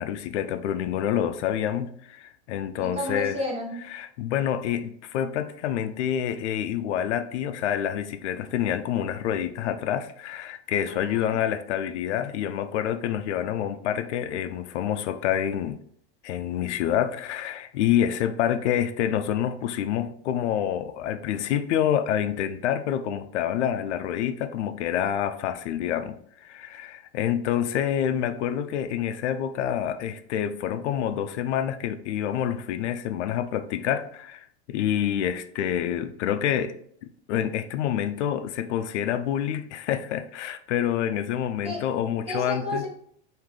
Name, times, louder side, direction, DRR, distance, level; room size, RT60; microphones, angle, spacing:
voice 1, 0.0-3.4 3.9-15.8 16.2-36.7 37.0-42.8, left 10 dB, 90° left, 0.5 m, -27 dB
voice 2, 2.8-3.8 10.9-11.4 41.6-41.8 42.3-42.9, left 1 dB, 20° right, 1.7 m, -32 dB
4.8 x 2.7 x 3.7 m
supercardioid pair, 150°, 34 cm